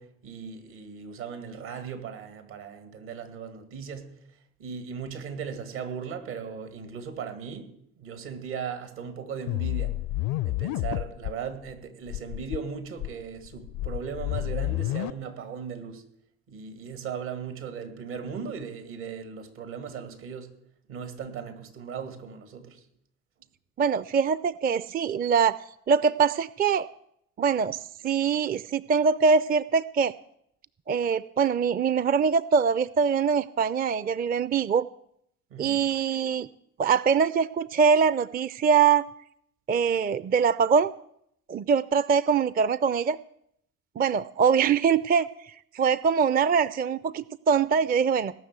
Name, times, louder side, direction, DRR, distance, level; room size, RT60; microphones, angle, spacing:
voice 1, 0.0-4.1 4.6-7.7 8.0-10.0 10.4-16.0 16.5-20.5 20.9-22.8 35.5-35.9, right 6 dB, 70° right, 7 dB, 2.3 m, -37 dB
sound 1, 9.5-11.3 11.7-11.8 12.1-12.6 13.0-15.1, left 17 dB, 60° left, 0.5 m, -30 dB
voice 2, 23.8-25.6 25.9-26.9 27.4-30.1 30.9-34.9 35.6-36.5 36.8-39.1 39.7-40.9 41.5-43.2 44.0-48.3, right 6 dB, 25° right, 18 dB, 0.4 m, -23 dB
18.0 x 6.2 x 8.2 m, 0.73 s
hypercardioid pair, 55°, 38 cm